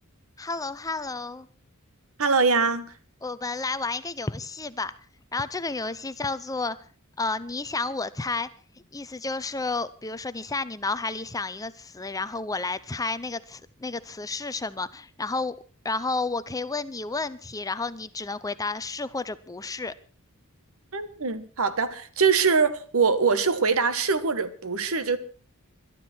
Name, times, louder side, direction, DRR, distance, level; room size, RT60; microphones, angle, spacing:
voice 1, 0.4-1.5 3.2-4.9 5.3-6.8 7.2-8.5 8.9-15.6 15.8-19.9, left 3 dB, 15° left, 0.6 m, -31 dB
voice 2, 2.2-2.9 20.9-25.2, right 5 dB, 70° right, 1.4 m, -23 dB
22.0 x 12.5 x 4.4 m
head